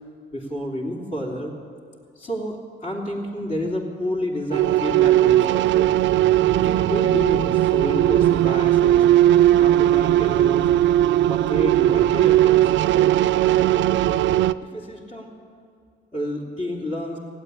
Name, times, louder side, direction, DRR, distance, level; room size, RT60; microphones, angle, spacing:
voice 1, 0.3-1.5 2.1-6.0 6.5-9.0 9.6-10.7 11.3-13.1 14.6-15.3 16.1-17.2, equal, 40° left, -4 dB, 3.1 m, -30 dB
sound 1, 4.5-14.5, right 13 dB, 70° right, 0.4 m, -18 dB
16.0 x 8.4 x 10.0 m, 2.2 s
cardioid pair, 90°, 20 cm